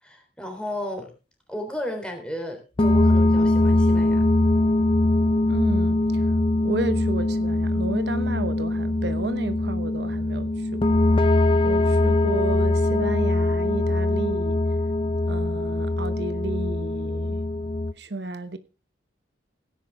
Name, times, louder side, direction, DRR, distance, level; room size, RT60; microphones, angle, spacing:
voice 1, 0.0-1.1 1.5-4.2, equal, 5° left, 3.6 m, -33 dB
sound 1, 2.8-17.9, left 2 dB, 30° left, 0.5 m, -22 dB
voice 2, 5.5-6.3 6.6-11.0 11.3-14.6 15.3-17.4 18.0-18.6, right 2 dB, 65° right, 0.9 m, -33 dB
17.0 x 10.5 x 3.5 m
head